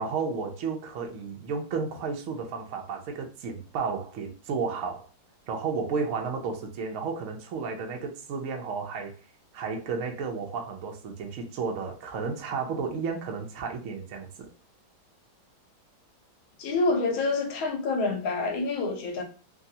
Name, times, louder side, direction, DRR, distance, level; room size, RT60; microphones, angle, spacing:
voice 1, 0.0-5.1 5.5-9.1 9.5-14.5, right 5 dB, 75° right, 0.7 m, -32 dB
voice 2, 16.6-19.2, left 3 dB, 90° left, 1.5 m, -27 dB
3.6 x 2.0 x 2.7 m
omnidirectional pair, 2.1 m